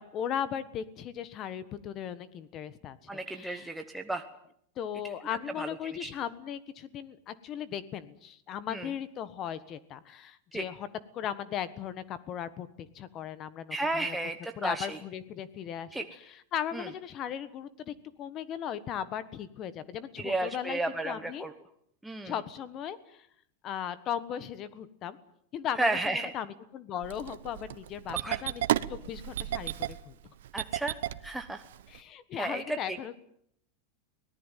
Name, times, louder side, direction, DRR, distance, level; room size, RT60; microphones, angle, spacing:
voice 1, 0.0-3.7 4.8-10.9 11.1-14.2 14.6-16.0 16.5-21.4 22.2-23.2 23.6-25.2 25.5-28.6 28.9-30.1 31.9-33.2, left 9 dB, 25° left, 15 dB, 1.4 m, -37 dB
voice 2, 3.1-4.2 5.6-6.1 8.7-8.9 10.5-10.6 13.7-15.0 15.9-16.0 16.7-16.9 20.2-21.5 22.0-22.3 25.8-26.3 28.2-28.4 30.5-31.0 31.2-31.6 32.3-33.0, right 2 dB, 5° right, 5 dB, 1.0 m, -33 dB
Engine starting, 27.0-32.0, right 12 dB, 85° right, 1.0 m, -33 dB
24.0 x 18.0 x 9.2 m, 0.69 s
supercardioid pair, 170°, 0 cm